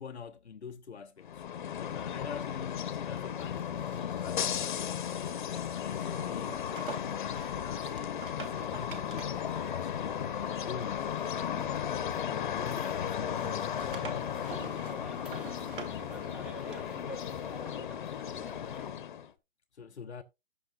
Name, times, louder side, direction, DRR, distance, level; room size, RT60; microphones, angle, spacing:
voice 1, 0.0-1.4 1.8-5.1 5.5-6.6 7.2-10.3 10.6-11.1 12.3-13.9 19.7-20.2, left 6 dB, 90° left, 0.9 m, -45 dB
sound 1, 1.2-19.3, left 9 dB, 50° left, 1.1 m, -35 dB
sound 2, 2.0-12.6 12.9-17.2, right 5 dB, 55° right, 2.9 m, -50 dB
sound 3, 8.3-18.9, equal, 5° right, 0.9 m, -50 dB
14.0 x 7.5 x 2.6 m
hypercardioid pair, 145°, 32 cm